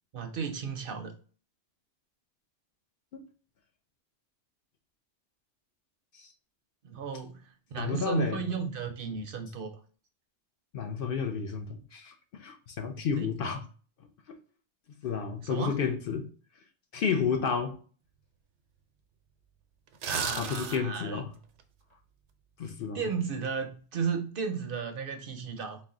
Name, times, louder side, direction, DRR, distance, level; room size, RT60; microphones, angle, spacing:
voice 1, 0.1-1.1 6.8-9.7 13.2-13.3 15.4-15.7 20.0-21.2 22.9-25.8, right 6 dB, 60° right, 0.7 m, -34 dB
voice 2, 7.8-8.4 10.7-13.7 14.3-14.4 15.0-16.3 16.9-17.8 20.4-21.3 22.6-23.0, left 6 dB, 60° left, 0.7 m, -31 dB
sound 1, 19.9-21.0 21.4-21.6, right 7 dB, 90° right, 0.9 m, -34 dB
4.0 x 2.2 x 3.6 m
omnidirectional pair, 1.2 m